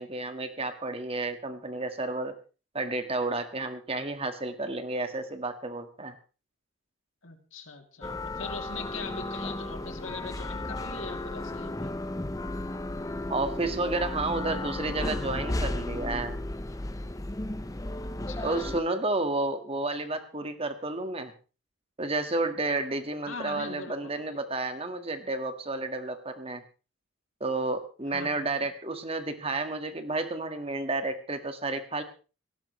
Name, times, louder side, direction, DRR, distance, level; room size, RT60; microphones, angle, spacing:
voice 1, 0.0-2.3 2.7-6.1 13.3-16.4 18.4-21.3 22.0-26.6 27.4-32.0, right 2 dB, 30° right, 8 dB, 1.6 m, -31 dB
voice 2, 7.2-11.9 18.0-18.8 23.3-24.4 28.1-28.7, left 4 dB, 75° left, 5 dB, 2.7 m, -42 dB
sound 1, 8.0-18.8, left 1 dB, 15° left, 0.7 m, -34 dB
18.0 x 17.5 x 3.2 m, 0.35 s
head